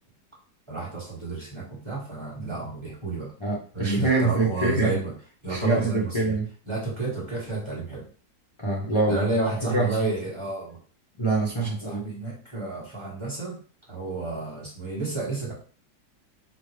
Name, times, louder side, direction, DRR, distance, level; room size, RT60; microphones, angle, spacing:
voice 1, 0.7-3.3 3.7-5.1 5.4-6.3 6.7-8.1 9.1-10.8 11.6-13.6 13.9-15.5, right 3 dB, 20° right, -4 dB, 1.0 m, -31 dB
voice 2, 3.4-4.9 5.5-6.5 8.6-9.2 9.7-9.9 11.2-12.0, right 2 dB, 35° left, -4 dB, 0.4 m, -25 dB
5.2 x 2.2 x 3.2 m, 0.41 s
omnidirectional pair, 1.9 m